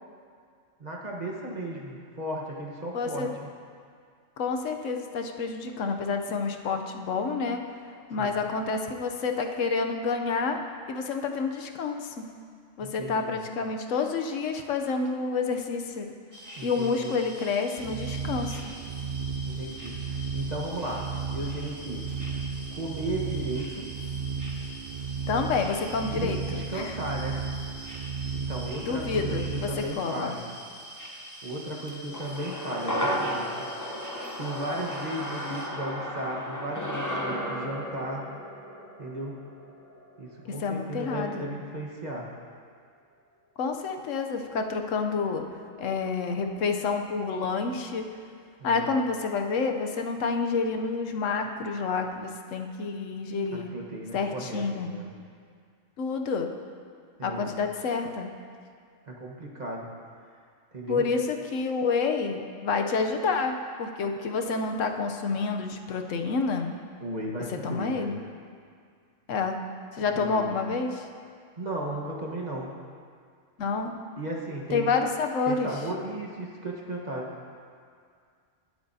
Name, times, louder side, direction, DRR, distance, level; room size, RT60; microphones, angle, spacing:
voice 1, 0.8-3.5 8.2-8.3 12.8-13.3 16.6-17.1 19.5-21.1 21.3-22.0 22.7-23.9 26.1-27.4 28.4-30.4 31.4-33.5 34.4-38.2 39.0-39.4 40.2-42.3 48.6-48.8 53.5-55.1 57.2-57.5 59.1-59.9 60.7-61.0 67.0-68.1 70.1-70.4 71.6-72.7 74.2-74.9 75.5-77.3, right 1 dB, 35° right, -2 dB, 1.3 m, -35 dB
voice 2, 2.9-3.3 4.4-7.6 8.1-10.6 10.9-12.4 12.8-16.1 16.6-18.6 25.3-27.0 28.8-30.4 40.5-41.5 43.6-45.4 45.8-48.1 48.6-53.8 54.1-55.0 56.0-56.5 57.2-58.3 60.9-66.7 67.5-68.2 69.3-71.1 73.6-74.0 74.7-75.8, left 4 dB, 80° left, 4 dB, 1.1 m, -29 dB
sound 1, 16.3-35.7, equal, 15° right, 1.3 m, -45 dB
sound 2, 17.8-29.9, right 6 dB, 65° right, 0.7 m, -34 dB
sound 3, 32.1-40.6 40.9-41.0, equal, 15° left, 0.8 m, -34 dB
20.0 x 8.1 x 2.7 m, 2.2 s
omnidirectional pair, 1.3 m